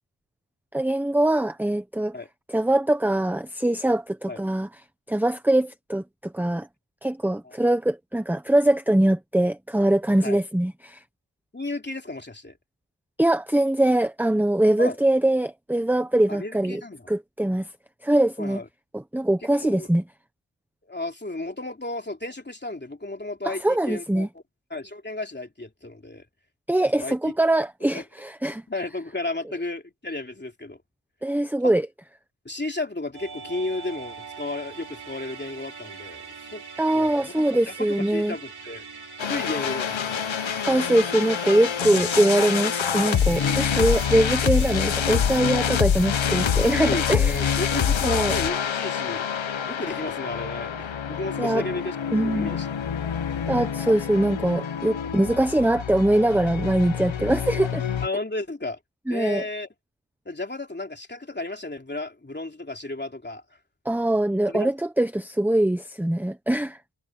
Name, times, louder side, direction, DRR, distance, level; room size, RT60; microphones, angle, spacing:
voice 1, 0.7-2.1 2.5-4.7 5.1-6.7 7.0-11.0 13.2-16.8 17.1-17.7 18.0-18.6 18.9-20.0 23.4-24.3 26.7-28.6 31.2-31.9 36.8-38.3 40.6-47.5 48.0-48.3 51.4-51.6 52.1-52.5 53.5-57.8 59.1-59.4 63.8-66.8, right 1 dB, 5° right, 0.9 m, -22 dB
voice 2, 11.5-12.6 14.8-15.0 16.3-17.1 18.4-18.7 19.6-19.9 20.9-24.3 24.7-26.2 26.9-27.3 27.9-28.0 28.7-30.8 31.6-31.7 32.4-36.2 36.5-36.6 36.9-38.8 39.2-40.3 41.9-42.1 43.4-43.8 46.8-49.3 49.7-52.0 52.2-52.7 53.9-54.0 55.1-55.4 58.0-58.8 59.1-59.7 60.2-63.4 64.5-64.7, left 2 dB, 25° left, 3.1 m, -33 dB
Musical instrument, 33.1-44.8, right 5 dB, 55° right, 4.0 m, -41 dB
sound 1, 39.2-58.1, left 8 dB, 85° left, 1.3 m, -26 dB
wide cardioid pair, 105°, 45 cm